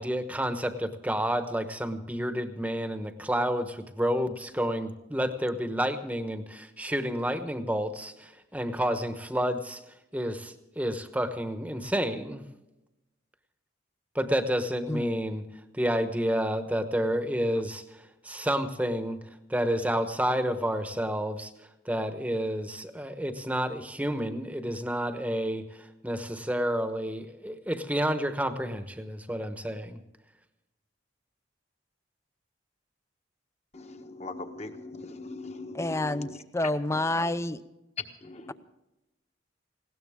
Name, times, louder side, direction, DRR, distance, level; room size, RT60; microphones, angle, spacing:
voice 1, 0.0-9.8 10.1-12.4 14.1-15.4 15.7-19.2 19.5-21.5 21.8-30.0, equal, 10° right, 1.1 m, -30 dB
voice 2, 33.7-36.4 36.6-37.1 38.0-38.5, left 3 dB, 35° left, 1.3 m, -40 dB
voice 3, 35.7-36.3 36.5-37.6, left 1 dB, 15° left, 0.6 m, -28 dB
19.5 x 17.5 x 3.7 m
head